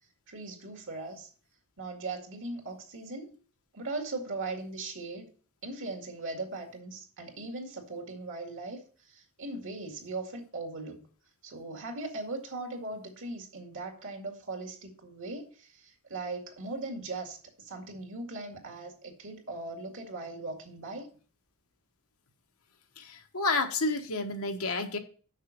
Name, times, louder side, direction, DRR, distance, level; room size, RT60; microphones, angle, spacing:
voice 1, 0.3-1.3 1.8-3.3 3.7-5.3 5.6-11.1 11.4-21.1, right 3 dB, 60° right, 3 dB, 2.3 m, -39 dB
voice 2, 23.0-25.0, left 3 dB, 70° left, 5 dB, 1.2 m, -30 dB
6.5 x 6.1 x 6.6 m, 0.41 s
head